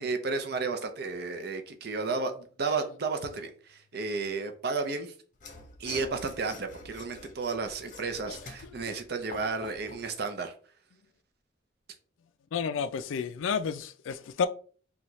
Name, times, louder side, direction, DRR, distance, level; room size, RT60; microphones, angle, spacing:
voice 1, 0.0-5.1 5.8-10.5, right 4 dB, 55° right, 0.6 m, -33 dB
Mechanisms / Sawing, 5.3-10.1, left 3 dB, 40° left, 0.6 m, -47 dB
voice 2, 12.5-14.5, left 6 dB, 85° left, 0.4 m, -31 dB
4.1 x 2.3 x 3.0 m
head